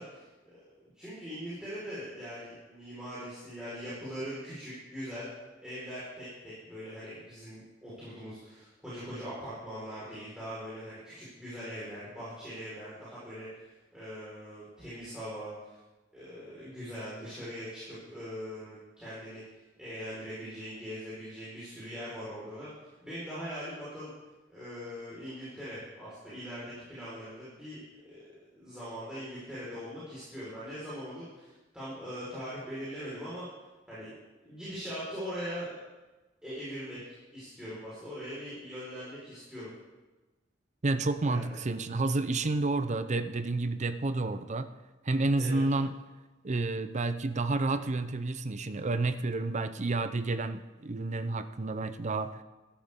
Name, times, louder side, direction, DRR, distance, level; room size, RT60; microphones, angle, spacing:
voice 1, 0.0-5.3 5.6-15.8 16.1-19.4 19.8-22.7 23.0-24.1 24.5-27.8 28.0-28.2 28.5-33.4 33.9-34.1 34.4-35.8 36.4-37.1 37.3-39.7 41.2-41.5 45.4-45.6 47.7-47.8, equal, 5° right, -12 dB, 4.7 m, -41 dB
voice 2, 40.8-44.7 45.0-45.9 46.4-52.4, right 2 dB, 40° right, 11 dB, 0.6 m, -30 dB
15.0 x 11.5 x 3.7 m, 1.2 s
head